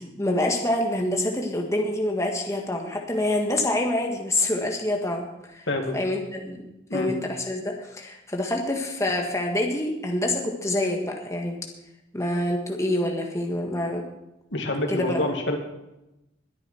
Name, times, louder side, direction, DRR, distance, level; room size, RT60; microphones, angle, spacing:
voice 1, 0.0-5.7 5.9-6.6 6.9-11.6 12.1-14.0 14.9-15.2, left 1 dB, 15° left, 1 dB, 1.6 m, -26 dB
voice 2, 5.7-6.0 6.9-7.1 14.5-15.6, left 1 dB, 70° left, 3 dB, 2.3 m, -27 dB
21.5 x 9.1 x 4.5 m, 0.93 s
head